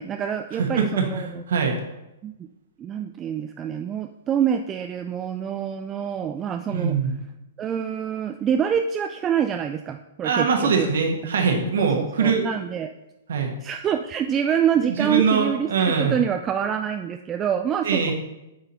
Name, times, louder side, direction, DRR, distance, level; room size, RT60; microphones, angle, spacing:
voice 1, 0.0-1.4 2.2-2.3 2.8-6.9 7.6-10.9 11.8-12.9 13.6-18.1, right 8 dB, 20° right, 6 dB, 0.3 m, -26 dB
voice 2, 0.6-1.8 6.7-7.2 10.2-12.4 13.3-13.5 15.0-16.2 17.8-18.1, right 5 dB, 60° right, 3 dB, 1.2 m, -22 dB
9.0 x 4.0 x 4.1 m, 0.94 s
figure-of-eight pair, 110°, 0 cm